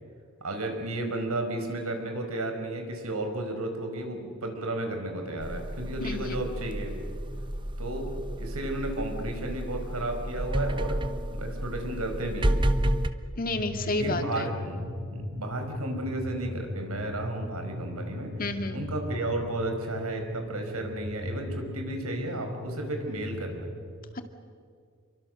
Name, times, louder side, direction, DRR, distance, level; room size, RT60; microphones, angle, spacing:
voice 1, 0.4-6.9 7.8-11.0 11.3-12.5 14.0-18.3 18.7-23.7, right 1 dB, 85° right, 4 dB, 5.1 m, -33 dB
sound 1, 5.4-13.1, right 1 dB, 20° right, 1.0 m, -31 dB
voice 2, 6.0-6.4 13.4-14.5 18.4-18.8 24.1-24.2, left 2 dB, 40° left, 6 dB, 2.0 m, -30 dB
sound 2, 13.5-23.7, left 1 dB, 40° right, 2.1 m, -38 dB
29.5 x 24.0 x 6.6 m, 2.2 s
head